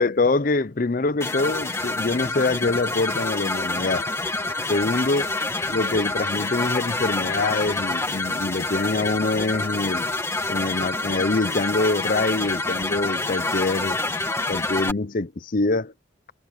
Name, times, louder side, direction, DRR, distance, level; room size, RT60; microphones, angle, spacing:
voice 1, 0.0-4.1 4.7-5.3 5.7-10.1 10.5-14.0 14.5-15.9, left 3 dB, 45° left, 0.6 m, -24 dB
sound 1, 1.2-14.9, left 2 dB, 15° left, 1.7 m, -27 dB
head